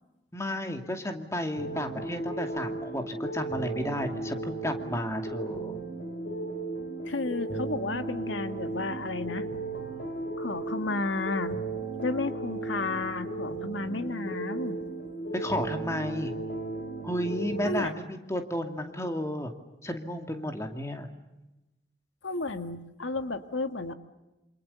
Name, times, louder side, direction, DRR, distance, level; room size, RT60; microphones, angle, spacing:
voice 1, 0.3-5.8 15.3-16.3 17.0-19.5 19.8-21.1, left 1 dB, 15° left, 5 dB, 2.5 m, -32 dB
sound 1, 1.6-17.7, right 2 dB, 65° left, 5.5 m, -35 dB
voice 2, 7.1-9.5 10.4-11.6 12.0-14.8 17.6-17.9 22.2-23.9, left 3 dB, 90° left, 8 dB, 1.8 m, -32 dB
28.5 x 27.5 x 6.9 m, 1.0 s
head